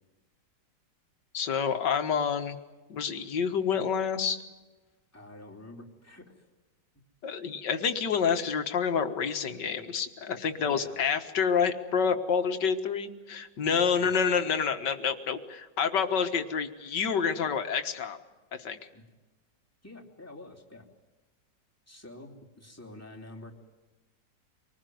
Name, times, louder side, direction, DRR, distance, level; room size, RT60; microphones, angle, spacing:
voice 1, 1.3-2.6 2.9-4.4 7.2-18.2 18.5-18.8, left 6 dB, 70° left, 8 dB, 2.2 m, -28 dB
voice 2, 5.1-6.4 10.5-11.0 13.6-14.2 18.9-19.0 19.8-20.8 21.9-23.5, left 2 dB, 10° left, -1 dB, 3.1 m, -47 dB
25.5 x 20.0 x 9.4 m, 1.2 s
omnidirectional pair, 2.0 m